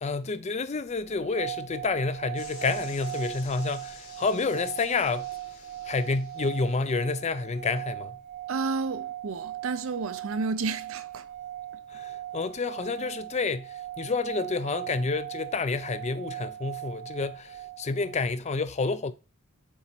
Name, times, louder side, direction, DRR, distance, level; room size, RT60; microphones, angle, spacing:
voice 1, 0.0-5.3 5.8-8.2 11.9-19.1, left 4 dB, 30° left, 0.5 m, -29 dB
sound 1, 1.0-18.2, right 13 dB, 35° right, 0.7 m, -39 dB
sound 2, 2.4-6.9, left 5 dB, 80° left, 2.6 m, -50 dB
voice 2, 8.5-11.3, right 4 dB, 70° right, 0.5 m, -31 dB
7.2 x 4.1 x 4.4 m
head